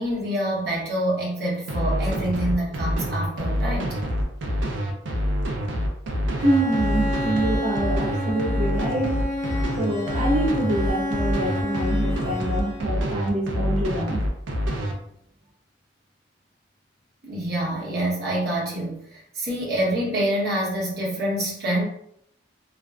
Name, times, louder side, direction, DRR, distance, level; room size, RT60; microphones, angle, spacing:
voice 1, 0.0-3.9 17.2-21.8, right 1 dB, 55° right, -5 dB, 0.9 m, -26 dB
sound 1, 1.7-14.9, equal, 85° right, 0.5 m, -26 dB
Bowed string instrument, 6.4-13.1, left 1 dB, 40° left, 0.4 m, -30 dB
voice 2, 6.4-9.2 9.8-14.2, right 1 dB, 35° right, -2 dB, 0.6 m, -26 dB
2.5 x 2.1 x 2.3 m, 0.70 s
head